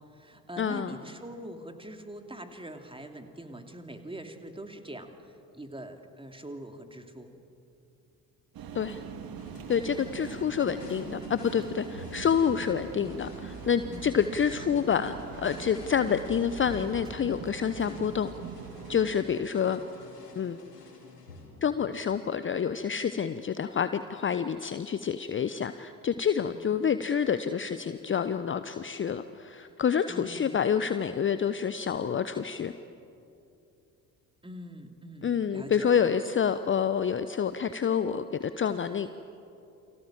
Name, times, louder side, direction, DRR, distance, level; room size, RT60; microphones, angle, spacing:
voice 1, 0.0-7.3 13.9-14.2 19.6-19.9 26.4-26.6 30.1-30.5 34.4-36.0, right 1 dB, 10° right, 5 dB, 2.9 m, -43 dB
voice 2, 0.6-1.0 8.7-9.0 9.7-15.1 15.4-18.3 18.9-19.8 20.3-20.6 21.6-32.7 35.2-39.1, left 7 dB, 25° left, 12 dB, 0.9 m, -28 dB
sound 1, 8.5-19.1, right 6 dB, 45° right, 2.3 m, -42 dB
sound 2, 9.4-22.1, left 3 dB, 85° left, 3.1 m, -49 dB
29.5 x 24.5 x 7.5 m, 2.6 s
figure-of-eight pair, 50°, 47 cm